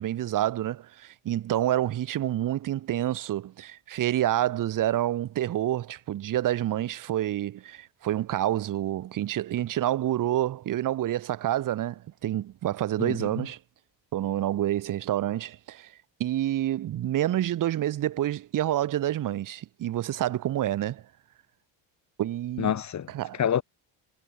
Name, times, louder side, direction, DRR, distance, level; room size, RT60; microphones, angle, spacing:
voice 1, 0.0-13.6 14.1-15.9 16.2-21.0 22.2-22.7 23.1-23.4, right 13 dB, 40° right, 0.8 m, -28 dB
voice 2, 13.0-13.5 22.6-23.6, left 9 dB, 35° left, 1.3 m, -28 dB
cardioid pair, 110°, 49 cm